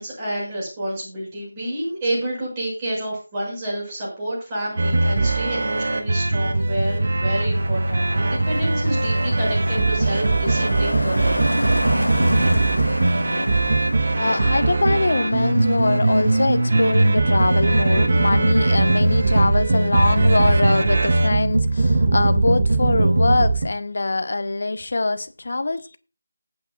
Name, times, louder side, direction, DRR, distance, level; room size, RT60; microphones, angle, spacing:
voice 1, 0.0-11.4, right 1 dB, 20° right, 6.8 m, -29 dB
sound 1, 4.8-23.7, right 2 dB, 45° right, 1.3 m, -20 dB
Car passing by, 5.8-20.6 20.9-21.2, left 1 dB, 85° left, 1.3 m, -30 dB
voice 2, 14.1-26.0, left 2 dB, 50° left, 0.9 m, -23 dB
19.5 x 8.5 x 2.5 m
figure-of-eight pair, 165°, 0 cm